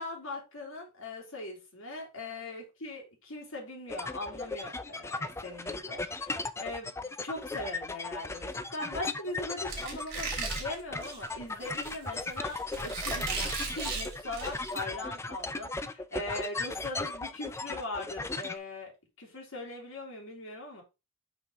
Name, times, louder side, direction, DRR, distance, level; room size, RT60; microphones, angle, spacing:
voice 1, 0.0-18.9 19.2-20.8, left 2 dB, 85° left, 2.9 m, -40 dB
sound 1, 3.9-18.6, left 3 dB, 15° left, 0.4 m, -37 dB
Squeak, 9.7-14.8, right 4 dB, 50° right, 3.0 m, -37 dB
6.1 x 5.6 x 3.6 m
head